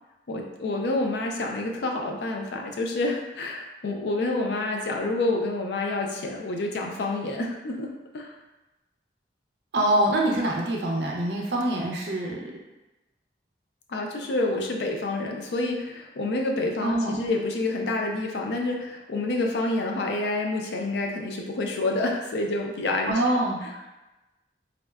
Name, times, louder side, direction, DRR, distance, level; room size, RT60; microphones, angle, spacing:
voice 1, 0.3-8.4 13.9-23.2, left 2 dB, 70° left, 1 dB, 0.4 m, -28 dB
voice 2, 9.7-12.5 16.8-17.2 23.1-23.9, right 1 dB, 70° right, -1 dB, 0.5 m, -25 dB
3.5 x 2.1 x 2.3 m, 1.0 s
head